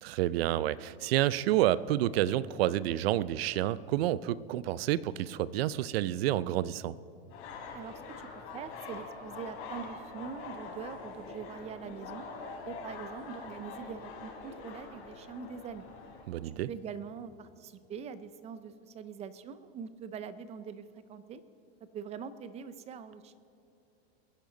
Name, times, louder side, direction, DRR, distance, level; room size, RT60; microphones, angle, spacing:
voice 1, 0.0-6.9 16.3-16.7, right 13 dB, 65° right, 19 dB, 0.6 m, -29 dB
sound 1, 7.3-16.2, left 4 dB, 40° left, 3.7 m, -44 dB
voice 2, 8.3-12.2 12.7-15.9 16.4-21.4 21.9-23.4, right 7 dB, 20° right, 14 dB, 0.5 m, -43 dB
22.0 x 10.5 x 3.9 m, 2.9 s
supercardioid pair, 135°, 32 cm